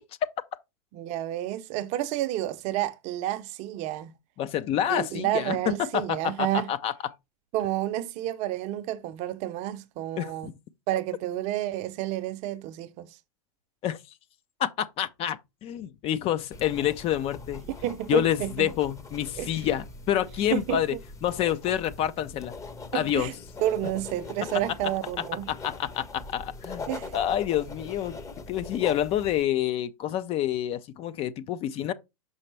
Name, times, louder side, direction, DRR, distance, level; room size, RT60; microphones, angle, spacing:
voice 1, 0.9-4.1 4.9-6.7 7.5-10.5 10.9-13.1 17.8-18.7 19.4-19.5 20.5-20.8 22.9-23.3 23.6-25.5 26.9-27.1, right 13 dB, 40° right, 0.7 m, -30 dB
voice 2, 4.4-7.1 10.2-10.5 13.8-14.0 14.6-17.6 18.1-22.5 22.9-23.3 25.5-28.2 28.5-31.9, left 11 dB, 30° left, 0.5 m, -28 dB
sound 1, 16.5-29.4, left 3 dB, 15° left, 0.9 m, -42 dB
5.8 x 5.5 x 3.3 m
hypercardioid pair, 115°, 18 cm